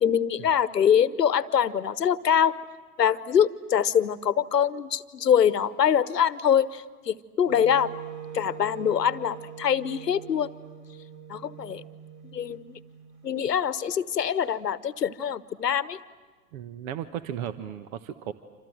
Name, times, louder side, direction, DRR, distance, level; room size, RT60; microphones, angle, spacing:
voice 1, 0.0-2.6 3.0-7.9 8.3-10.5 11.3-11.8 12.3-12.8 13.2-16.0, left 8 dB, 85° left, 16 dB, 1.1 m, -24 dB
Wind instrument woodwind instrument, 7.5-13.5, right 8 dB, 30° right, 4.3 m, -42 dB
voice 2, 16.5-18.3, right 10 dB, 60° right, 11 dB, 1.3 m, -35 dB
28.0 x 27.5 x 7.8 m, 1.4 s
hypercardioid pair, 105°, 47 cm